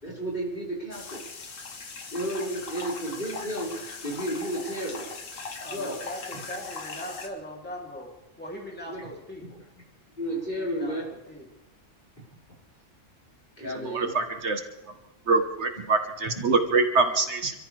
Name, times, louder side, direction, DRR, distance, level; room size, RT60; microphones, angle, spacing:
voice 1, 0.0-1.2 2.1-5.2 5.7-6.0 8.9-9.0 9.4-9.6 10.1-11.0 13.6-14.2 14.8-14.9 15.7-15.8 16.2-16.4, right 1 dB, 40° left, -5 dB, 5.5 m, -33 dB
water gurgling and water tap, 0.9-7.3, left 4 dB, 85° left, 1.7 m, -39 dB
voice 2, 5.6-8.1 8.4-9.6 10.6-11.0 11.3-11.4 13.9-14.0, equal, 10° left, -2 dB, 2.9 m, -40 dB
voice 3, 13.8-14.6 15.3-17.5, right 3 dB, 65° right, 6 dB, 1.5 m, -24 dB
26.5 x 14.0 x 3.3 m, 0.96 s
omnidirectional pair, 1.3 m